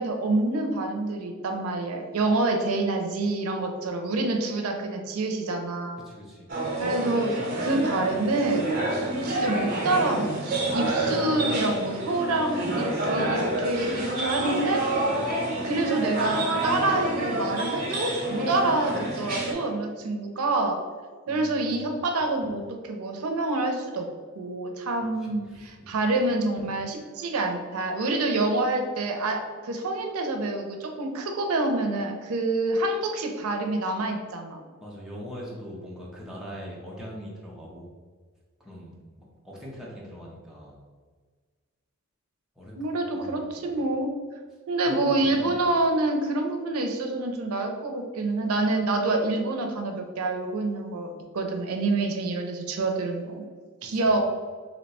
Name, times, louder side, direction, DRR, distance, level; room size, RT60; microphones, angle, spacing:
voice 1, 0.0-6.0 6.8-8.7 9.2-14.8 15.6-20.8 21.3-24.1 24.4-34.6 42.8-44.1 44.7-53.4 53.8-54.2, right 2 dB, 90° right, 3 dB, 0.5 m, -27 dB
voice 2, 6.0-6.5 21.3-21.9 25.2-25.9 34.8-37.9 38.6-40.8 42.6-42.7 43.1-43.8 44.9-45.6 53.9-54.0, equal, ahead, -5 dB, 0.6 m, -42 dB
sound 1, 6.5-19.5, right 1 dB, 40° right, 0.7 m, -28 dB
2.7 x 2.2 x 4.0 m, 1.5 s
head